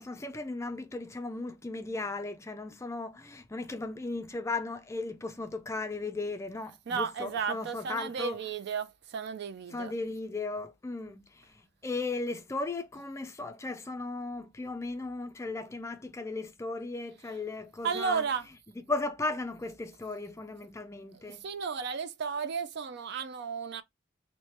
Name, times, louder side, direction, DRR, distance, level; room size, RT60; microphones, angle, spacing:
voice 1, 0.0-8.4 9.7-18.3 18.9-21.5, left 3 dB, 15° left, 0.3 m, -36 dB
voice 2, 6.9-9.9 17.3-17.4 17.8-18.5 21.1-23.8, right 6 dB, 55° right, 0.4 m, -34 dB
3.1 x 2.1 x 4.1 m
head